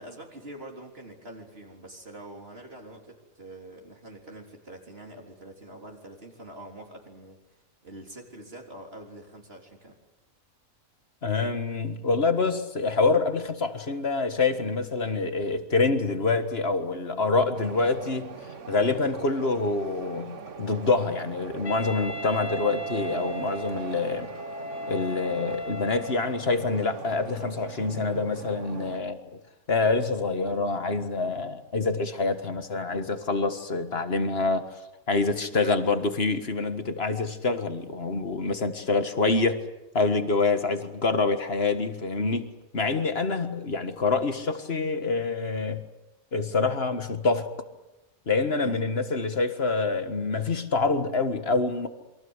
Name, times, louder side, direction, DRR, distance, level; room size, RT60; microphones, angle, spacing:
voice 1, 0.0-10.0 35.5-35.9 42.9-43.2 48.6-48.8, right 1 dB, 45° right, 1 dB, 3.8 m, -45 dB
voice 2, 11.2-18.3 18.7-24.3 24.9-29.4 29.7-34.7 35.1-39.6 39.9-45.8 46.3-47.5 48.3-51.9, left 3 dB, 45° left, 9 dB, 1.8 m, -26 dB
sound 1, 17.5-29.0, right 5 dB, 60° right, 1.5 m, -42 dB
Wind instrument woodwind instrument, 21.6-26.6, right 2 dB, 75° left, 3.2 m, -36 dB
27.5 x 23.0 x 8.1 m, 1.0 s
omnidirectional pair, 1.5 m